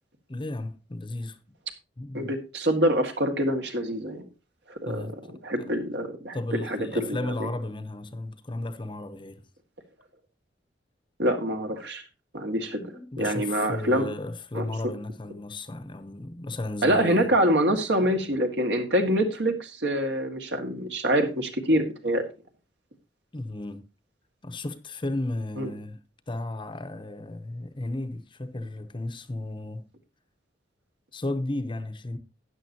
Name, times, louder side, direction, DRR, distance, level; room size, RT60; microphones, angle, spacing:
voice 1, 0.3-1.4 2.0-2.4 4.9-5.4 6.3-9.4 12.8-17.3 22.1-22.2 23.3-23.8 24.4-26.0 26.3-29.9 31.1-32.2, left 2 dB, 30° left, 0.8 m, -34 dB
voice 2, 2.1-4.3 4.7-5.1 5.4-7.5 11.2-12.0 12.3-12.8 13.2-14.1 14.5-14.7 16.8-22.2 25.6-25.7, equal, 70° right, 1.9 m, -25 dB
12.5 x 9.4 x 2.8 m
head